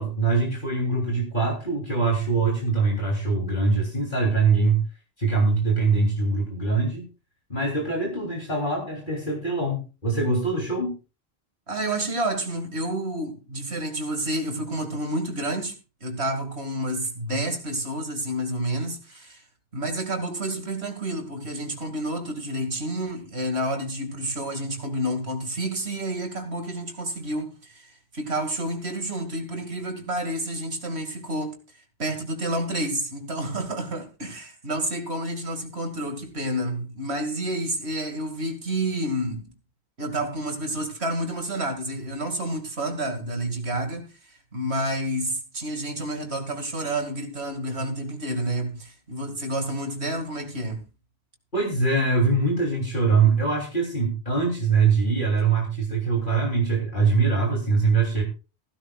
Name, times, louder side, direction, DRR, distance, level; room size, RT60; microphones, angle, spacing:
voice 1, 0.0-4.8 5.2-7.0 7.5-10.9 51.5-58.2, right 4 dB, 50° left, 3.4 m, -23 dB
voice 2, 11.7-19.4 19.7-31.6 32.0-39.5 40.0-50.8, right 1 dB, 80° right, 2.6 m, -29 dB
15.5 x 15.5 x 2.4 m
omnidirectional pair, 1.1 m